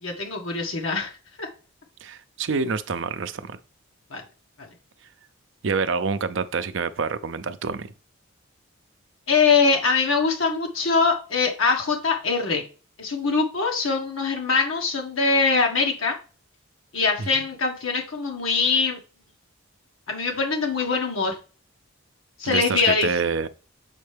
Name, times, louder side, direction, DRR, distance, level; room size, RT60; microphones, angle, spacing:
voice 1, 0.0-1.1 1.4-1.5 4.1-4.2 9.3-12.6 13.0-16.2 16.9-19.0 20.1-21.3 22.4-23.1, left 4 dB, 75° left, 1.4 m, -23 dB
voice 2, 2.0-3.6 5.6-7.9 17.2-17.5 22.4-23.5, right 5 dB, 60° right, 0.5 m, -27 dB
7.4 x 4.4 x 3.4 m
head